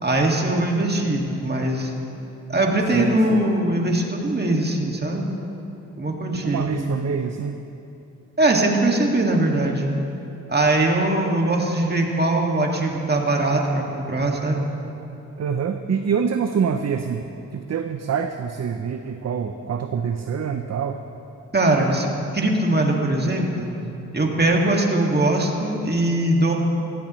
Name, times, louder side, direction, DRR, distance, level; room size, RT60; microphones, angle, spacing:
voice 1, 0.0-1.9 2.5-5.3 6.0-6.7 8.4-9.9 10.5-14.6 21.5-22.1 22.3-23.7 24.1-26.5, right 2 dB, 30° right, 0 dB, 2.1 m, -21 dB
voice 2, 2.9-3.5 6.3-7.6 15.4-17.2 17.5-21.0, right 6 dB, 50° right, 7 dB, 0.6 m, -26 dB
16.0 x 14.0 x 3.2 m, 2.9 s
cardioid pair, 55°, 33 cm